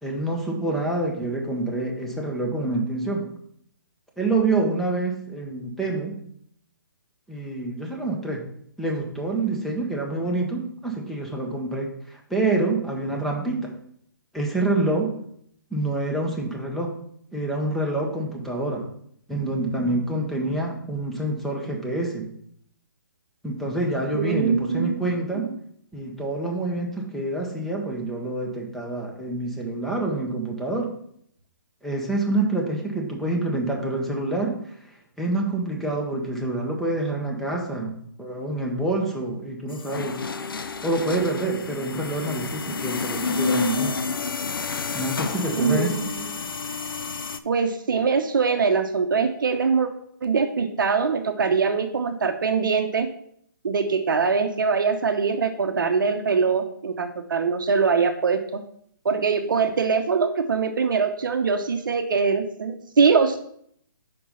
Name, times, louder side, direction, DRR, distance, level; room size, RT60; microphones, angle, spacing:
voice 1, 0.0-3.3 4.2-6.2 7.3-8.4 8.8-13.7 14.3-15.1 15.7-16.9 17.3-18.9 19.3-22.3 23.4-25.5 25.9-30.9 31.8-34.6 35.2-40.2 40.8-44.0 44.9-45.9, right 2 dB, ahead, -1 dB, 1.0 m, -27 dB
voice 2, 24.1-25.1 25.3-25.5 45.5-46.3 47.4-49.9 50.2-53.1 53.6-58.6 59.0-63.4, right 5 dB, 70° right, 7 dB, 0.7 m, -23 dB
sound 1, 39.7-47.4, left 4 dB, 80° left, 0.5 m, -29 dB
5.2 x 4.5 x 5.6 m, 0.67 s
figure-of-eight pair, 140°, 12 cm